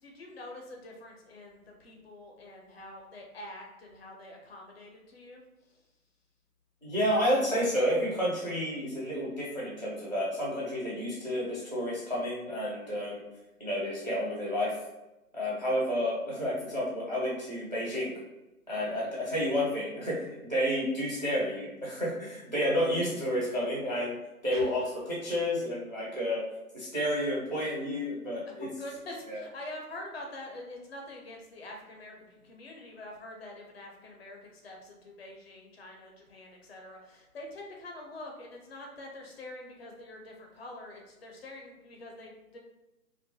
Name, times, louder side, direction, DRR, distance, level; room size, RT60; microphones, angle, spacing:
voice 1, 0.0-5.8 12.9-13.2 18.7-19.1 24.5-24.7 28.6-42.6, left 1 dB, 45° left, 0 dB, 0.5 m, -46 dB
voice 2, 6.8-13.2 13.6-14.7 15.3-18.1 18.7-24.1 24.4-24.8 25.1-26.4 26.7-28.7 29.3-29.4, equal, 30° right, -6 dB, 0.4 m, -30 dB
2.3 x 2.1 x 2.8 m, 0.97 s
figure-of-eight pair, 155°, 45 cm